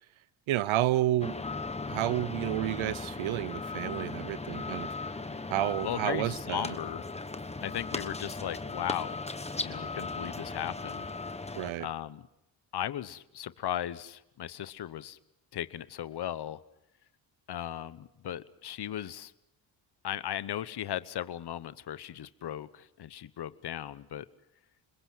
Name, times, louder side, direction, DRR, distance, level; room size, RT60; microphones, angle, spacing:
voice 1, 0.5-1.3 1.9-4.9 5.5-6.8 11.6-11.9, right 14 dB, 75° right, 18 dB, 0.8 m, -30 dB
sound 1, 1.2-11.7, left 3 dB, 15° left, 1.2 m, -37 dB
voice 2, 5.8-7.0 7.6-9.2 9.6-11.1 11.8-12.2 12.7-15.2 15.5-16.6 17.5-19.3 20.0-24.2, left 11 dB, 55° left, 15 dB, 1.0 m, -37 dB
27.0 x 21.5 x 6.3 m, 0.84 s
cardioid pair, 95°, 48 cm